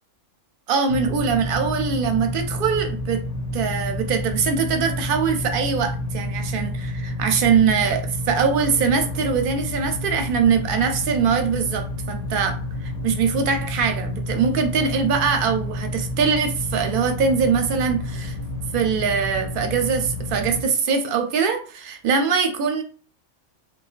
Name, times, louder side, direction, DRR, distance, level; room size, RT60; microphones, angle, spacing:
voice 1, 0.7-3.2 3.5-12.6 12.8-18.4 18.7-22.8, right 6 dB, 55° right, 0.7 m, -22 dB
sound 1, 0.9-20.6, left 1 dB, 90° left, 1.1 m, -29 dB
4.6 x 2.0 x 2.4 m
omnidirectional pair, 1.2 m